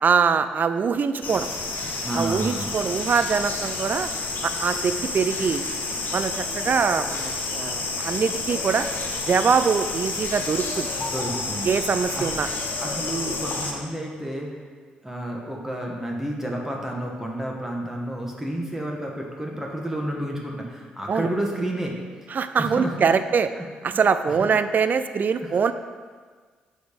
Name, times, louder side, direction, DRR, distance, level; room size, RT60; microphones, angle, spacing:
voice 1, 0.0-1.5 2.1-4.1 4.4-5.7 6.1-8.9 9.3-10.9 11.7-12.5 21.1-21.3 22.3-23.5 23.8-25.7, right 6 dB, 45° right, 11 dB, 0.3 m, -23 dB
sound 1, 1.2-13.7, left 3 dB, 50° left, 0.9 m, -30 dB
voice 2, 2.0-2.7 11.0-11.7 12.2-12.3 12.8-14.6 15.0-21.9 22.6-24.0 24.3-24.5 25.4-25.7, right 1 dB, 10° right, -1 dB, 1.2 m, -31 dB
5.0 x 3.9 x 5.2 m, 1.5 s
hypercardioid pair, 40°, 4 cm